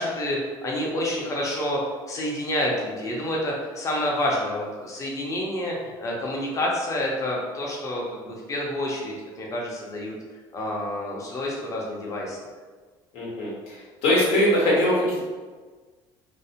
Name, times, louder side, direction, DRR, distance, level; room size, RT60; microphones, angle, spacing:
voice 1, 0.0-1.8 2.1-10.1 10.5-12.4, left 1 dB, 35° left, -2 dB, 0.6 m, -28 dB
voice 2, 13.1-15.3, left 1 dB, 85° left, -5 dB, 1.0 m, -22 dB
2.6 x 2.0 x 2.8 m, 1.4 s
cardioid pair, 110°, 10 cm